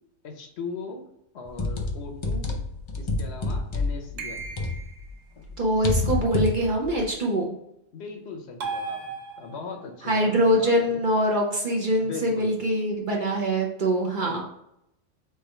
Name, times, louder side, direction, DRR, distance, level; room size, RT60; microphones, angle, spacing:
voice 1, 0.2-1.1 1.3-2.5 3.0-4.5 7.9-11.0 12.0-12.7 14.2-14.4, left 5 dB, 65° left, 4 dB, 0.9 m, -39 dB
sound 1, 1.5-5.1 5.4-7.0, left 2 dB, 45° left, 0.3 m, -28 dB
sound 2, 4.2-5.1 8.6-9.8, right 4 dB, 80° right, 1.1 m, -35 dB
voice 2, 5.6-7.5 10.1-14.4, equal, 45° right, -1 dB, 0.8 m, -23 dB
3.5 x 3.3 x 4.3 m, 0.79 s
omnidirectional pair, 1.3 m